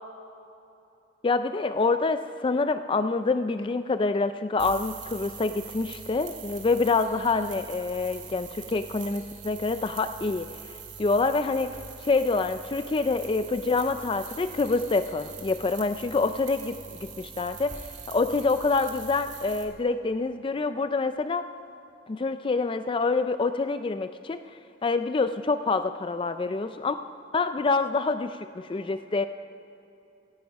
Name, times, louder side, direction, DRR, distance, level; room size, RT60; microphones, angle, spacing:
voice 1, 1.2-21.5 22.1-27.0 27.3-29.3, left 3 dB, 30° left, 10 dB, 0.4 m, -27 dB
sound 1, 4.6-19.6, right 6 dB, 40° right, 2.0 m, -43 dB
17.5 x 14.5 x 5.3 m, 2.8 s
head